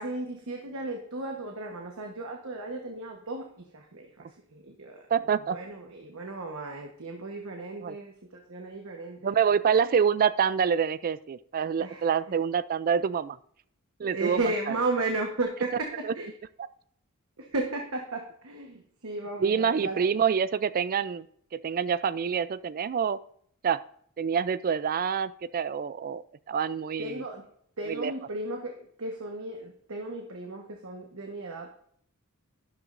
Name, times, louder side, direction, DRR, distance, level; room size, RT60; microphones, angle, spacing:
voice 1, 0.0-5.1 5.4-9.4 11.8-12.1 14.0-16.3 17.4-20.1 27.0-27.5 27.8-31.7, right 2 dB, 65° right, 2 dB, 1.2 m, -35 dB
voice 2, 5.1-5.6 7.8-8.0 9.2-13.4 14.0-14.4 19.4-21.2 21.5-23.2 23.6-23.8 24.2-26.2 26.5-27.2 27.9-28.1, right 7 dB, 40° right, 16 dB, 0.3 m, -26 dB
12.0 x 11.0 x 2.6 m, 0.65 s
head